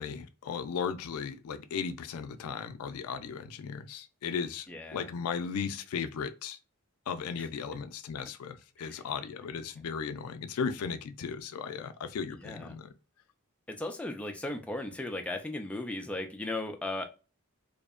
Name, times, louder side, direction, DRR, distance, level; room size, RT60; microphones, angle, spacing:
voice 1, 0.0-4.7 4.9-6.6 7.1-12.9, left 6 dB, 85° left, 0.4 m, -36 dB
voice 2, 4.7-5.1 7.4-7.5 8.8-9.0 12.3-12.8 13.7-17.0, left 2 dB, 5° left, 0.3 m, -37 dB
2.7 x 2.1 x 2.3 m
head